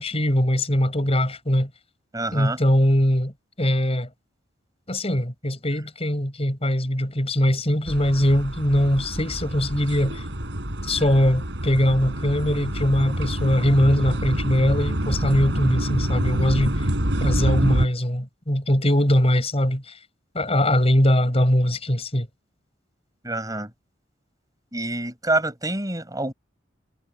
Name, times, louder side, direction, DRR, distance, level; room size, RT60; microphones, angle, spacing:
voice 1, 0.0-1.7 2.3-3.3 3.6-4.1 4.9-10.2 10.8-16.7 17.2-19.8 20.3-22.3, equal, 35° left, 5.1 m, -21 dB
voice 2, 2.1-2.6 23.2-23.7 24.7-26.3, right 2 dB, 20° right, 7.6 m, -27 dB
sound 1, 7.9-17.9, equal, 70° right, 5.4 m, -27 dB
head